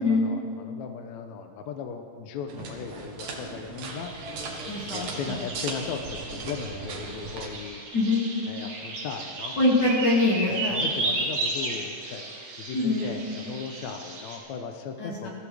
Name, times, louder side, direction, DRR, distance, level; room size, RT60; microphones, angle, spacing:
voice 1, 0.0-4.1 4.9-7.8 8.5-9.6 10.5-12.3 12.6-15.3, left 6 dB, 70° left, 5 dB, 1.9 m, -37 dB
sound 1, 2.5-7.5, right 3 dB, 85° right, 3.1 m, -38 dB
sound 2, 3.8-14.4, right 2 dB, 65° right, 3.9 m, -34 dB
voice 2, 4.7-5.4 7.9-8.2 9.6-10.8 12.7-13.1 15.0-15.3, left 2 dB, 35° left, -4 dB, 2.7 m, -24 dB
22.5 x 14.5 x 3.5 m, 2.3 s
omnidirectional pair, 3.7 m